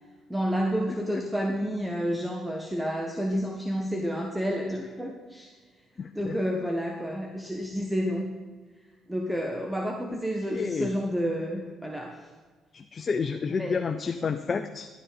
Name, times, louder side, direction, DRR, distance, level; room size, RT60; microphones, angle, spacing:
voice 1, 0.3-5.5 6.0-8.3 9.1-12.3 13.5-13.9, equal, 5° right, 1 dB, 1.5 m, -30 dB
voice 2, 6.0-6.4 10.5-10.9 12.7-14.9, left 5 dB, 40° left, 8 dB, 0.7 m, -30 dB
12.0 x 8.8 x 5.3 m, 1.5 s
hypercardioid pair, 55°, 0 cm